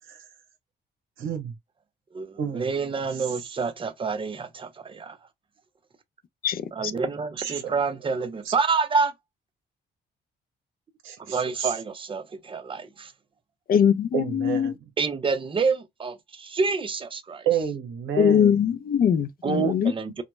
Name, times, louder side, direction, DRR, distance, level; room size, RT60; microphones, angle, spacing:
voice 1, 1.2-1.5 2.4-2.7 7.4-7.7 8.5-8.6 11.0-11.7 14.1-14.7 17.5-18.5, right 8 dB, 85° right, 0.8 m, -29 dB
voice 2, 2.1-5.2 6.7-9.1 11.2-13.1 15.0-17.5 19.4-20.2, right 4 dB, 25° right, 0.5 m, -28 dB
voice 3, 13.7-14.7 18.2-19.9, left 8 dB, 50° left, 0.4 m, -21 dB
2.1 x 2.1 x 3.0 m
cardioid pair, 90°, 20 cm